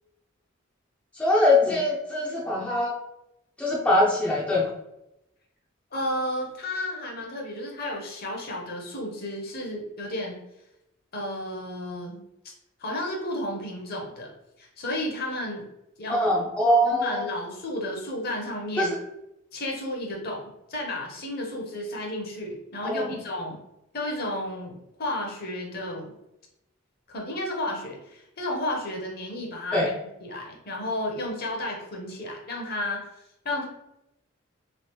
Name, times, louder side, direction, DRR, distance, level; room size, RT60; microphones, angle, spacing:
voice 1, 1.2-2.9 3.6-4.7 16.1-17.2 18.8-18.9 22.8-23.1 29.7-29.9, left 1 dB, 5° left, -5 dB, 0.4 m, -22 dB
voice 2, 5.9-10.4 11.1-12.2 12.8-14.3 14.6-15.7 16.0-16.2 16.8-18.9 19.5-23.6 23.9-26.1 27.1-29.9 30.2-33.1 33.4-33.7, left 1 dB, 50° left, 0 dB, 0.8 m, -32 dB
3.1 x 2.4 x 3.0 m, 0.88 s
head